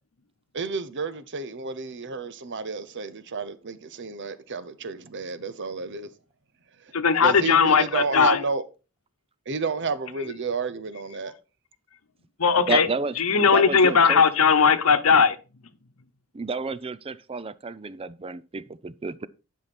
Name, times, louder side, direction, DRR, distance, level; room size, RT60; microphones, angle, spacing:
voice 1, 0.5-6.1 6.8-6.9 7.2-8.6 9.5-11.3, right 4 dB, 60° right, 0.9 m, -31 dB
voice 2, 6.9-8.4 12.4-12.9 13.2-15.4, left 6 dB, 90° left, 1.0 m, -18 dB
voice 3, 12.7-14.2 16.3-19.3, right 3 dB, 25° right, 0.5 m, -31 dB
11.0 x 5.7 x 4.3 m
head